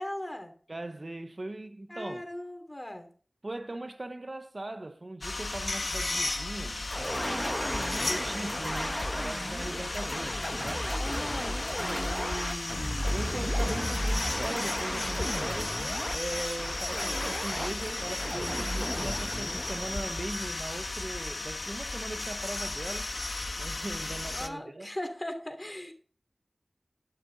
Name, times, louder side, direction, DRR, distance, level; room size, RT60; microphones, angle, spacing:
voice 1, 0.0-0.5 1.9-3.1 11.0-11.6 24.3-25.9, left 1 dB, 25° left, 2.8 m, -38 dB
voice 2, 0.7-2.2 3.4-11.1 11.8-15.8 16.1-23.1 23.6-24.9, right 2 dB, 50° right, 0.9 m, -39 dB
sound 1, 5.2-24.5, left 2 dB, 80° left, 1.2 m, -35 dB
sound 2, 6.9-20.8, equal, 5° left, 1.2 m, -34 dB
11.0 x 11.0 x 3.9 m
wide cardioid pair, 45°, 0 cm